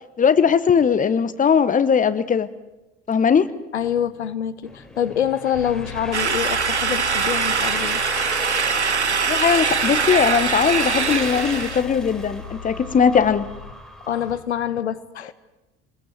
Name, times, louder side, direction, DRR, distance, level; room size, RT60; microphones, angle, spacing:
voice 1, 0.2-2.5 3.1-3.5 9.3-13.5, left 7 dB, 25° left, 1.2 m, -19 dB
voice 2, 3.7-8.0 14.1-15.3, left 9 dB, 80° left, 0.8 m, -25 dB
sound 1, 4.6-14.4, left 1 dB, ahead, 4.1 m, -36 dB
sound 2, 5.5-13.7, left 7 dB, 50° left, 3.4 m, -39 dB
sound 3, 6.1-11.8, right 5 dB, 85° right, 0.8 m, -22 dB
25.5 x 21.0 x 7.7 m
figure-of-eight pair, 60°, 33 cm